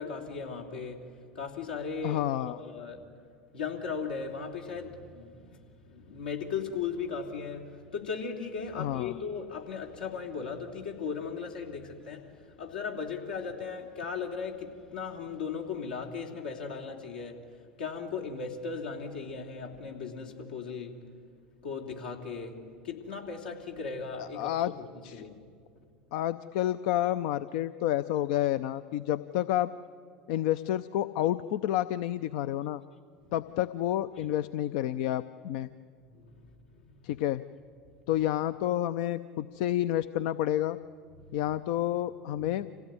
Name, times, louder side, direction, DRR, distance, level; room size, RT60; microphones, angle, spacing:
voice 1, 0.0-3.0 3.5-21.0 21.6-24.7 25.1-25.5 33.2-33.3 34.2-34.3 36.1-37.0 37.9-38.0 41.1-41.5 42.3-42.5, left 5 dB, 85° left, 3.1 m, -37 dB
voice 2, 2.0-2.6 8.8-9.1 24.4-24.7 25.0-25.1 26.1-29.7 30.3-32.8 33.3-35.7 37.0-37.4 38.1-40.8 41.3-42.7, left 13 dB, 65° left, 0.6 m, -29 dB
26.5 x 16.5 x 9.6 m
hypercardioid pair, 80°, 5 cm